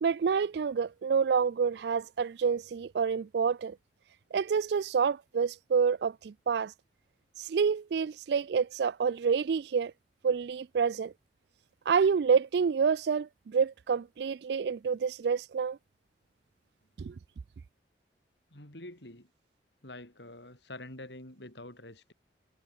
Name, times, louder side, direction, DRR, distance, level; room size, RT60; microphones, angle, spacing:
voice 1, 0.0-3.8 4.3-6.7 7.4-9.9 10.2-11.1 11.9-15.8 17.0-17.2, right 6 dB, 65° right, 0.4 m, -28 dB
voice 2, 18.5-19.3 19.8-22.1, left 1 dB, 75° left, 6.7 m, -46 dB
head